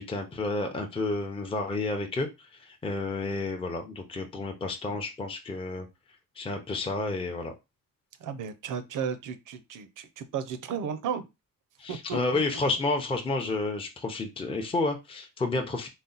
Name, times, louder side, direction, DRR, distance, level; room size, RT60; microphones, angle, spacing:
voice 1, 0.0-2.3 2.6-5.9 6.4-7.5 11.8-15.9, left 2 dB, 15° left, 3 dB, 0.6 m, -30 dB
voice 2, 8.2-11.2 11.9-12.2, right 7 dB, 65° right, 11 dB, 0.6 m, -34 dB
4.1 x 2.1 x 3.9 m, 0.23 s
cardioid pair, 135°, 34 cm